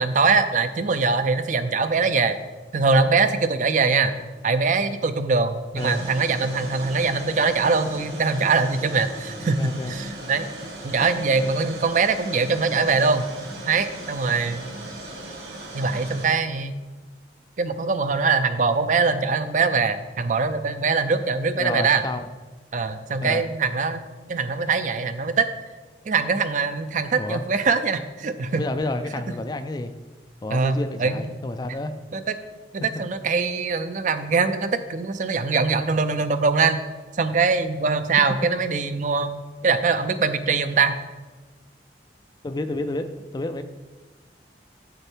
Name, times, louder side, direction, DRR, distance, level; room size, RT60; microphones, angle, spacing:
voice 1, 0.0-2.4 2.7-4.1 4.4-10.5 10.8-13.3 13.7-14.7 15.7-16.8 17.6-22.0 22.7-24.0 24.3-25.5 26.1-28.6 30.5-31.3 32.1-32.3 32.7-36.8 37.1-40.9, right 4 dB, 45° right, 10 dB, 0.4 m, -22 dB
sound 1, 5.8-16.2, right 1 dB, 60° right, 1.7 m, -38 dB
voice 2, 9.4-9.9 21.5-22.3 23.2-23.4 27.2-27.4 28.5-29.9 30.4-31.9 32.9-33.0 42.4-43.6, left 2 dB, 25° left, 9 dB, 0.3 m, -30 dB
7.0 x 6.5 x 4.5 m, 1.3 s
head